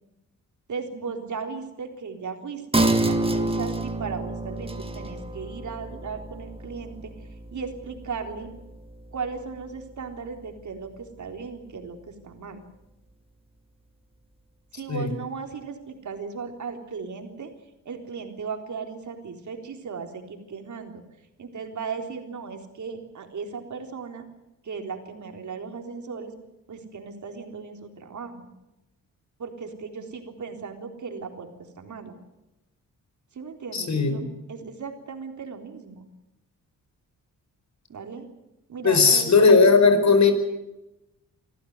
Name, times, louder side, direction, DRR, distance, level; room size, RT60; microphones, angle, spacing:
voice 1, 0.7-7.1 7.5-8.5 9.1-12.6 14.7-17.5 17.9-21.0 21.4-24.3 24.6-26.3 26.7-28.5 29.4-32.1 33.3-36.0 37.9-38.2 38.7-39.3, right 5 dB, 60° right, 4 dB, 3.9 m, -36 dB
sound 1, 2.7-9.8 10.1-10.2, right 2 dB, 15° right, 2.2 m, -29 dB
voice 2, 33.7-34.2 38.8-40.3, left 4 dB, 55° left, 8 dB, 4.8 m, -17 dB
25.0 x 14.5 x 9.6 m, 0.96 s
cardioid pair, 75°, 33 cm